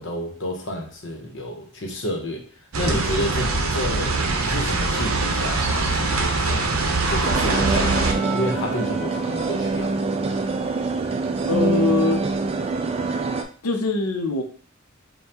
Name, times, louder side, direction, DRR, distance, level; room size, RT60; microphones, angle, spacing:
voice 1, 0.0-2.4 2.8-6.7 7.1-10.0, equal, 55° left, 2 dB, 0.9 m, -30 dB
sound 1, 2.7-8.1, right 3 dB, 70° right, 0.7 m, -23 dB
sound 2, 5.5-10.0 10.4-10.6, equal, 10° left, 1.8 m, -37 dB
sound 3, 7.2-13.4, right 3 dB, 25° right, 0.3 m, -25 dB
voice 2, 11.4-12.2 13.6-14.4, left 4 dB, 90° left, 5 dB, 0.7 m, -22 dB
5.3 x 2.2 x 2.9 m, 0.43 s
head